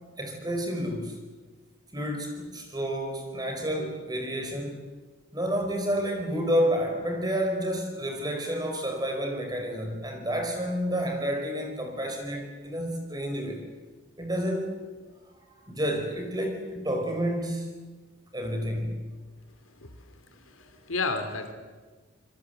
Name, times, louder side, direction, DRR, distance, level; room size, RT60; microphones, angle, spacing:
voice 1, 0.2-1.2 1.9-4.8 5.3-13.6 14.2-14.8 15.2-17.7 18.3-19.0, equal, 20° right, 3 dB, 4.8 m, -30 dB
voice 2, 19.7-21.5, left 3 dB, 85° left, 8 dB, 3.2 m, -33 dB
27.0 x 22.0 x 8.0 m, 1.3 s
head